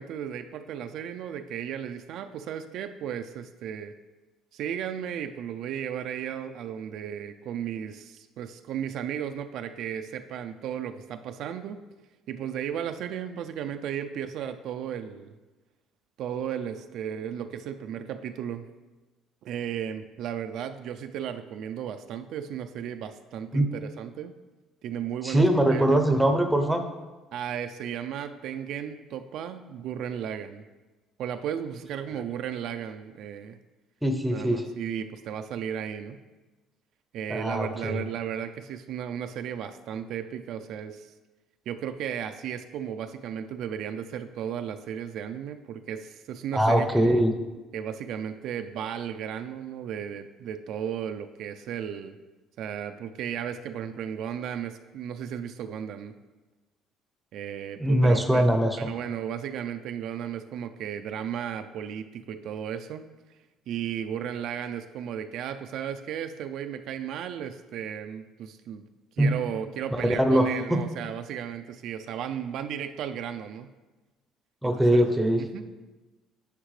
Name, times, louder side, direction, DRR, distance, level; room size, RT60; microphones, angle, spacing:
voice 1, 0.0-3.9 4.5-11.8 12.3-15.3 16.2-18.6 19.4-24.3 24.8-25.5 25.7-25.9 27.3-30.6 31.2-33.6 34.3-36.2 37.1-41.1 41.7-47.2 47.7-52.2 52.6-56.1 57.3-58.5 58.8-63.0 63.7-68.9 69.2-73.7 74.9-75.0 75.5-75.6, right 9 dB, 60° right, 7 dB, 0.4 m, -35 dB
voice 2, 25.2-26.8 34.0-34.7 37.3-38.0 46.5-47.3 57.8-58.7 69.2-69.4 69.9-70.5 74.6-75.4, right 1 dB, ahead, 5 dB, 0.7 m, -22 dB
9.9 x 5.8 x 3.2 m, 1.2 s
cardioid pair, 145°, 0 cm